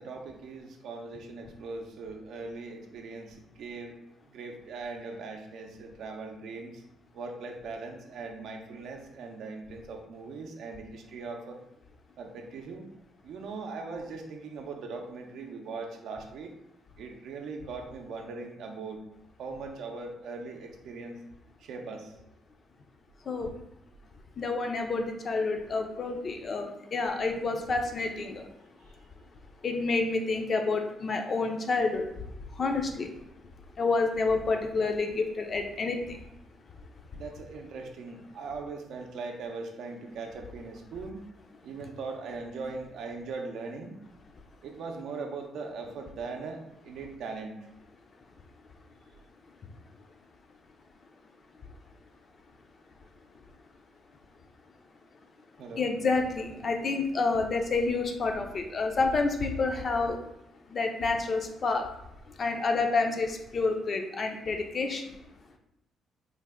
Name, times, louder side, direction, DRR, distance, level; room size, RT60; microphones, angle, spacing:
voice 1, 0.0-4.0 4.3-6.8 7.1-11.6 12.2-12.9 13.2-16.5 17.0-19.0 19.4-21.2 21.6-22.1 37.1-41.2 41.6-43.9 44.6-47.6 55.6-55.9, right 4 dB, 75° right, 3 dB, 0.5 m, -40 dB
voice 2, 24.4-28.4 29.6-32.1 32.6-33.1 33.8-36.2 55.8-60.2 60.7-61.9 62.4-65.0, left 3 dB, 45° left, 4 dB, 0.4 m, -28 dB
3.3 x 2.1 x 3.5 m, 0.84 s
cardioid pair, 90°, 0 cm